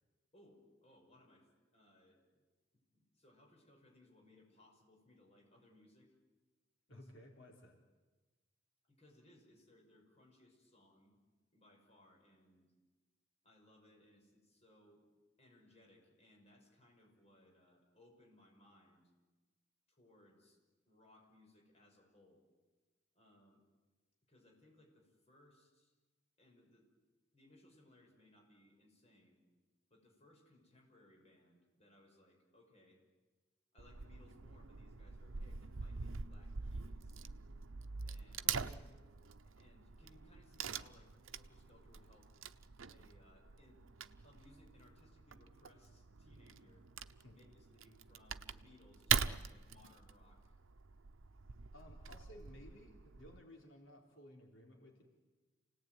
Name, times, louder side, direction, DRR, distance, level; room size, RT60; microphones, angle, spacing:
voice 1, 0.3-2.4 2.9-6.1 6.9-7.1 8.8-11.2 11.5-12.7 13.4-15.0 15.4-19.1 19.9-20.6 20.9-22.5 23.1-23.6 24.3-25.9 26.4-26.9 27.3-29.4 29.9-33.0 33.7-37.2 38.0-38.5 39.4-42.3 42.9-43.8 44.2-46.9 47.3-50.6, left 1 dB, 30° left, 0 dB, 6.2 m, -66 dB
voice 2, 6.9-7.7 38.4-38.9 47.2-47.4 51.7-55.0, left 1 dB, 80° left, 1 dB, 4.1 m, -57 dB
Wood / Tearing, 33.8-53.4, right 7 dB, 90° right, 0.8 m, -44 dB
28.5 x 18.5 x 9.4 m, 1.3 s
head